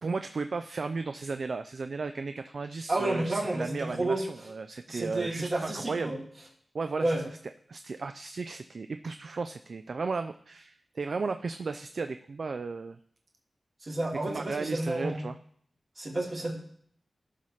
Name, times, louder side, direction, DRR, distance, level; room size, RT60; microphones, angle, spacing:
voice 1, 0.0-6.1 6.7-7.2 7.7-13.0 14.2-15.4, right 4 dB, 70° right, 8 dB, 0.3 m, -35 dB
voice 2, 2.9-4.2 4.9-6.2 7.0-7.2 13.8-15.2 16.0-16.5, right 2 dB, 50° right, -3 dB, 2.7 m, -30 dB
13.5 x 5.6 x 3.2 m, 0.63 s
cardioid pair, 55°, 0 cm